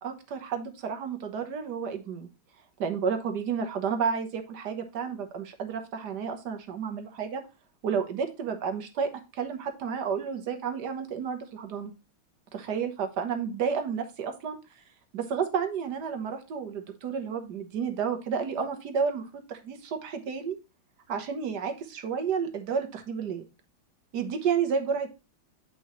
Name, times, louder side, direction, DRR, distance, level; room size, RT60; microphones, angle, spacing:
voice 1, 0.0-2.3 2.8-7.4 7.8-11.9 12.5-14.6 15.1-20.6 21.1-23.4 24.1-25.1, right 6 dB, 60° right, 6 dB, 1.6 m, -31 dB
8.5 x 5.3 x 3.1 m, 0.30 s
omnidirectional pair, 2.2 m